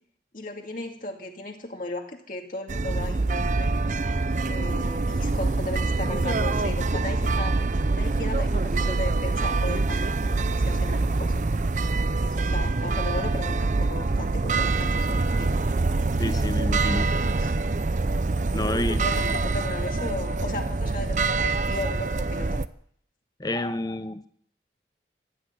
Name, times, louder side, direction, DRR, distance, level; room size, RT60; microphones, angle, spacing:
voice 1, 0.3-3.7 4.5-7.6 8.0-10.1 10.4-11.4 12.2-15.6 17.0-17.5 18.6-22.6, left 1 dB, 50° left, 2 dB, 2.4 m, -36 dB
sound 1, 2.7-22.7, right 3 dB, 45° right, 0.6 m, -25 dB
voice 2, 16.2-17.1 18.5-19.1 23.4-24.3, left 1 dB, 20° left, 12 dB, 0.8 m, -29 dB
15.0 x 11.5 x 8.0 m, 0.63 s
head